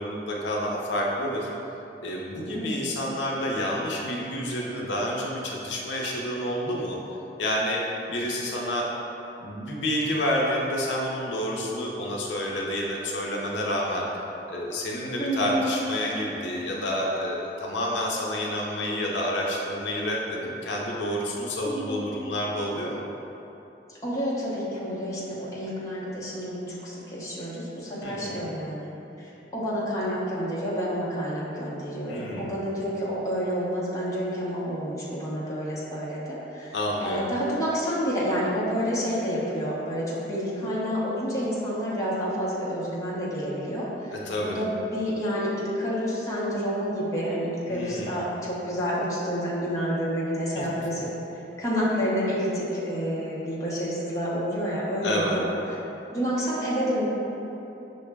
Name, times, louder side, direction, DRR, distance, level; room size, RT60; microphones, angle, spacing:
voice 1, 0.0-1.5 2.0-7.0 7.4-7.8 8.1-8.9 9.4-14.1 14.5-23.0 28.0-28.5 32.1-32.5 36.7-37.3 44.1-44.6 47.7-48.2 50.6-50.7 55.0-55.4, equal, 80° left, -2 dB, 0.5 m, -29 dB
voice 2, 2.5-3.1 15.2-15.7 21.6-22.1 24.0-28.9 29.2-36.8 37.0-51.1 51.6-55.8 56.1-57.0, equal, 15° left, -8 dB, 0.7 m, -29 dB
5.6 x 2.0 x 3.3 m, 3.0 s
head